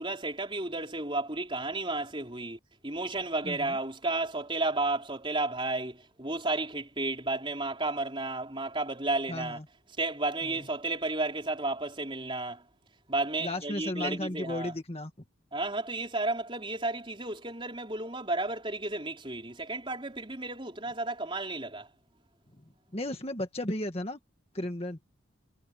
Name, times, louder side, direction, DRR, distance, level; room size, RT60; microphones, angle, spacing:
voice 1, 0.0-9.6 10.0-12.6 13.1-14.7 15.5-21.9, right 2 dB, 25° right, 4.4 m, -32 dB
voice 2, 3.4-3.8 9.3-9.6 10.5-10.6 13.4-15.1 22.9-24.2 24.5-25.0, left 1 dB, 30° left, 1.8 m, -34 dB
head